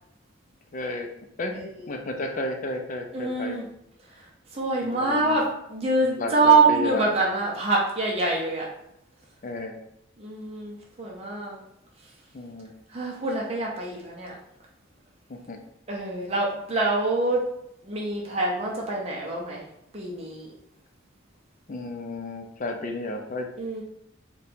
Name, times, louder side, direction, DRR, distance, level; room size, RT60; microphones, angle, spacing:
voice 1, 0.7-1.1 1.4-1.6 1.9-3.6 4.8-5.4 6.0-7.0 9.4-9.8 12.3-12.7 15.3-15.6 21.7-23.5, left 2 dB, 40° left, 3 dB, 0.4 m, -32 dB
voice 2, 3.1-3.7 4.5-8.7 10.2-11.6 12.9-14.4 15.9-17.4 17.8-19.6 19.9-20.5 23.6-23.8, right 3 dB, 30° right, -3 dB, 0.5 m, -25 dB
2.7 x 2.2 x 4.0 m, 0.77 s
head